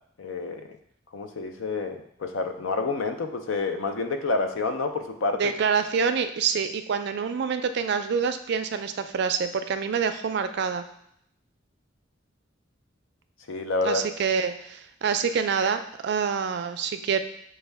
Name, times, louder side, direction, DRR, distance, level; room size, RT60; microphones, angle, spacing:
voice 1, 0.2-0.6 1.1-5.5 13.5-14.1, left 3 dB, 90° left, 6 dB, 0.5 m, -28 dB
voice 2, 5.4-10.8 13.8-17.2, right 6 dB, 60° right, 9 dB, 0.3 m, -26 dB
6.2 x 2.3 x 3.3 m, 0.72 s
head